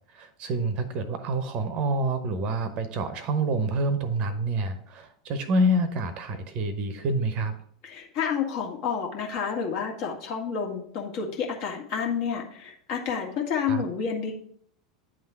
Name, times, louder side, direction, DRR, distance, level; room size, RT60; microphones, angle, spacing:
voice 1, 0.1-7.5 13.7-13.8, right 1 dB, 40° right, 10 dB, 0.9 m, -27 dB
voice 2, 7.8-14.3, left 6 dB, 50° left, 0 dB, 1.7 m, -30 dB
9.4 x 3.8 x 4.7 m, 0.63 s
figure-of-eight pair, 85°, 3 cm